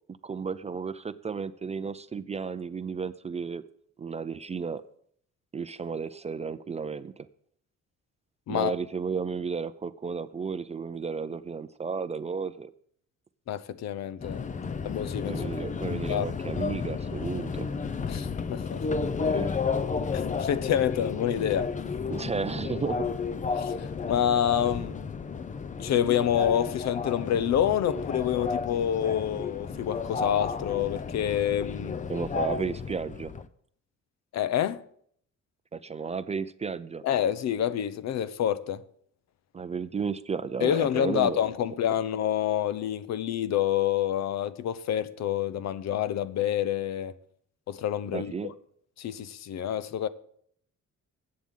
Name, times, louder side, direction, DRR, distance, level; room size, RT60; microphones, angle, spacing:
voice 1, 0.2-3.6 4.0-4.8 5.5-7.3 8.5-12.7 15.3-17.7 19.2-19.6 22.1-23.1 32.1-33.3 35.7-37.0 39.5-41.4 48.1-48.5, right 5 dB, 25° right, 0.4 m, -33 dB
voice 2, 13.5-14.5 14.8-15.4 15.8-16.3 18.1-18.8 20.1-21.7 23.5-25.1 25.8-32.0 34.3-34.8 37.0-38.8 40.6-47.1 47.7-48.5 49.0-50.1, left 10 dB, 65° left, 0.7 m, -28 dB
Subway metro underground, 14.2-33.4, left 5 dB, 25° left, 0.5 m, -32 dB
21.0 x 8.6 x 3.8 m
cardioid pair, 145°, 29 cm